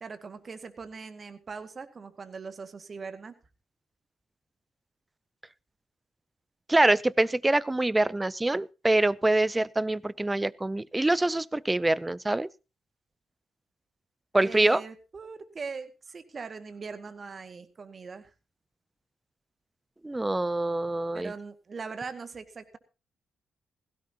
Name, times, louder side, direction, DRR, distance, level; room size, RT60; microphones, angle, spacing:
voice 1, 0.0-3.3 14.4-18.3 21.1-22.8, right 5 dB, 45° right, 2.1 m, -41 dB
voice 2, 6.7-12.5 14.3-14.8 20.0-21.3, right 2 dB, 20° right, 0.6 m, -25 dB
17.0 x 16.0 x 2.9 m
hypercardioid pair, 50°, 0 cm